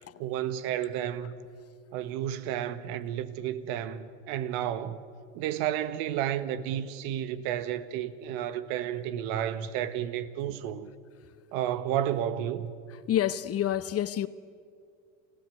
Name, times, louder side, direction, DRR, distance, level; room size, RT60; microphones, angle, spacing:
voice 1, 0.2-1.5 1.9-5.0 5.3-10.9 11.5-12.7, right 10 dB, 65° right, 1.6 m, -32 dB
voice 2, 13.1-14.3, left 11 dB, 35° left, 0.9 m, -28 dB
28.5 x 16.0 x 9.3 m
hypercardioid pair, 95°, 39 cm